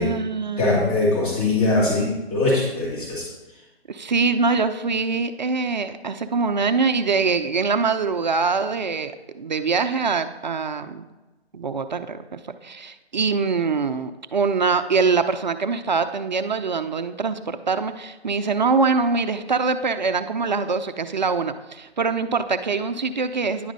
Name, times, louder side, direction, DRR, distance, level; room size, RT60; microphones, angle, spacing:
voice 1, 0.0-0.8 3.9-11.0 11.5-23.7, right 4 dB, 45° right, 9 dB, 0.4 m, -24 dB
voice 2, 0.6-3.2, left 2 dB, 35° left, -6 dB, 2.5 m, -21 dB
10.0 x 6.0 x 4.0 m, 1.1 s
hypercardioid pair, 160°, 32 cm